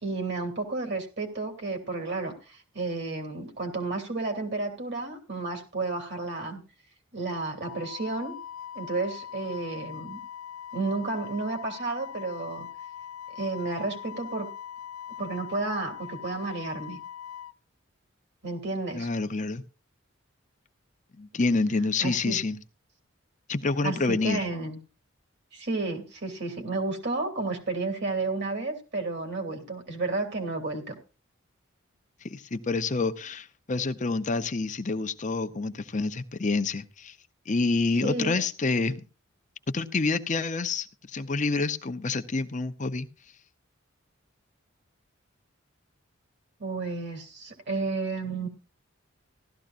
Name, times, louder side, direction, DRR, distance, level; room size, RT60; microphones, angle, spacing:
voice 1, 0.0-6.6 7.1-8.4 8.7-10.2 10.7-12.7 13.3-14.5 15.2-17.0 18.4-19.1 22.0-22.4 23.8-24.8 25.5-31.0 38.0-38.4 46.6-48.5, right 3 dB, 55° right, 2.9 m, -32 dB
Wind instrument woodwind instrument, 7.6-17.5, left 9 dB, 90° left, 0.5 m, -41 dB
voice 2, 18.9-19.6 21.1-22.6 23.5-24.4 32.2-37.2 37.5-39.0 39.7-43.1, left 3 dB, 35° left, 0.7 m, -28 dB
16.0 x 13.0 x 2.5 m
head